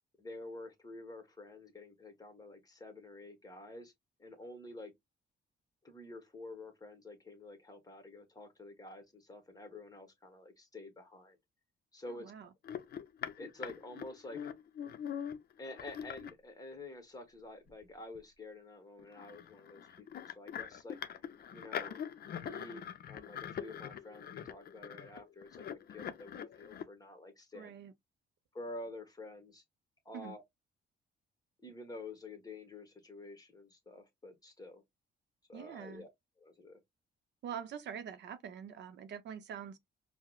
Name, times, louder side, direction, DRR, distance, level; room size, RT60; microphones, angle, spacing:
voice 1, 0.2-3.9 4.2-4.9 5.8-11.4 11.9-12.3 13.4-14.5 15.6-21.0 21.5-22.0 22.2-25.6 25.9-27.7 28.5-29.6 30.0-30.4 31.6-34.8 35.5-36.1 36.4-36.8, left 2 dB, 20° left, 1.1 m, -49 dB
voice 2, 12.1-12.5 27.5-27.9 30.1-30.3 35.5-36.0 37.4-39.8, right 8 dB, 60° right, 0.6 m, -45 dB
sound 1, 12.6-16.3 17.7-17.8 18.1-18.2 19.0-26.8, left 9 dB, 50° left, 0.5 m, -43 dB
4.6 x 2.0 x 2.2 m
cardioid pair, 90°, 20 cm